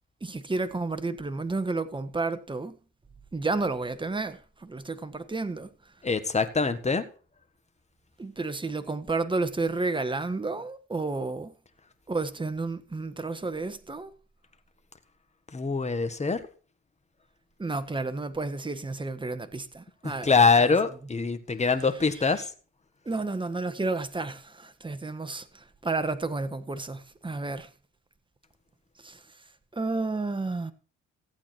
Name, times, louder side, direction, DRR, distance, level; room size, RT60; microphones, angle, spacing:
voice 1, 0.2-2.8 3.3-5.7 8.2-11.5 12.1-14.1 17.6-20.3 20.6-20.8 22.1-22.5 23.1-27.7 29.0-29.2 29.7-30.7, right 3 dB, 15° right, 1.4 m, -31 dB
voice 2, 6.0-7.0 15.5-16.4 20.0-22.4, left 4 dB, 20° left, 1.6 m, -24 dB
15.0 x 8.6 x 4.5 m
cardioid pair, 90°, 30 cm